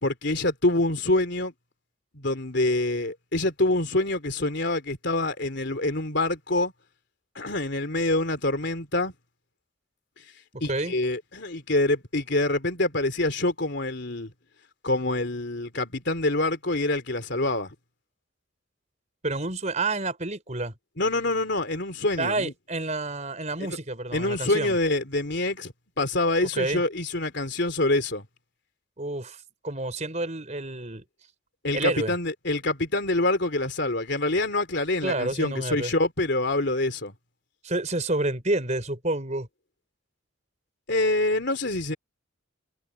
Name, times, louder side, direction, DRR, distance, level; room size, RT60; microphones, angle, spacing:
voice 1, 0.0-1.5 2.1-6.7 7.4-9.1 10.6-14.3 14.8-17.7 21.0-22.5 23.6-23.8 24.1-28.3 31.6-37.1 40.9-42.0, left 2 dB, 55° left, 3.6 m, -26 dB
voice 2, 10.5-10.9 19.2-20.7 22.2-24.8 26.5-26.8 29.0-31.0 31.7-32.1 35.0-35.9 37.6-39.5, right 2 dB, 35° right, 4.5 m, -29 dB
head